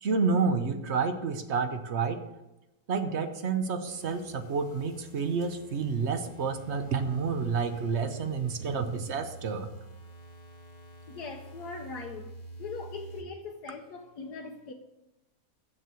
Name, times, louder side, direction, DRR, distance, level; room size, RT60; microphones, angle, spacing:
voice 1, 0.0-2.2 2.9-9.7, right 5 dB, 55° right, 0.9 m, -29 dB
sound 1, 3.9-13.2, right 2 dB, 30° left, 0.9 m, -48 dB
voice 2, 11.1-12.3 12.6-14.7, left 4 dB, 75° left, 1.3 m, -40 dB
7.7 x 7.4 x 6.8 m
omnidirectional pair, 1.8 m